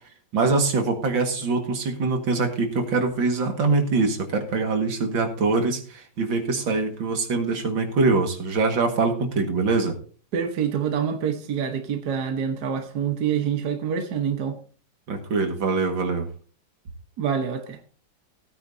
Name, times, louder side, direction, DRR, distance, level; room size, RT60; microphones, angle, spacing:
voice 1, 0.3-10.0 15.1-16.3, right 3 dB, 75° right, 2.5 m, -23 dB
voice 2, 10.3-14.6 17.2-17.8, right 7 dB, 60° right, 1.6 m, -26 dB
16.5 x 9.5 x 2.7 m
omnidirectional pair, 2.1 m